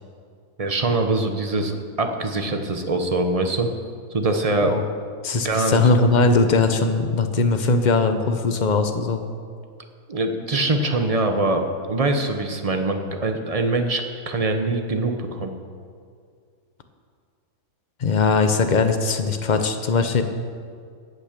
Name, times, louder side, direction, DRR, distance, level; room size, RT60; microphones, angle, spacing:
voice 1, 0.6-3.7 4.1-4.8 5.4-5.8 10.1-15.5, right 2 dB, 35° right, 5 dB, 0.6 m, -23 dB
voice 2, 5.2-9.2 18.0-20.2, left 3 dB, 40° left, 7 dB, 0.6 m, -20 dB
17.0 x 6.5 x 6.6 m, 2.2 s
omnidirectional pair, 1.7 m